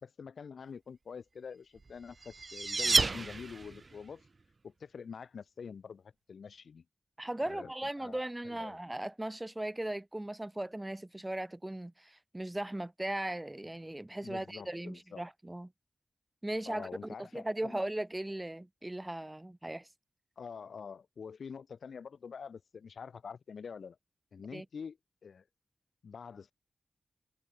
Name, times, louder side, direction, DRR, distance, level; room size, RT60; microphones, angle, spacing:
voice 1, 0.0-4.2 4.6-6.8 7.5-7.7 8.0-8.2 8.5-8.8 14.2-15.2 16.7-17.8 20.4-24.0 24.3-25.0 25.2-25.4 26.0-26.5, left 6 dB, 90° left, 2.5 m, -46 dB
sound 1, 1.9-3.9, right 3 dB, 40° right, 0.3 m, -30 dB
voice 2, 7.2-15.7 16.4-19.9 24.5-24.7, right 1 dB, 15° right, 0.7 m, -38 dB
wide cardioid pair, 135°, 0 cm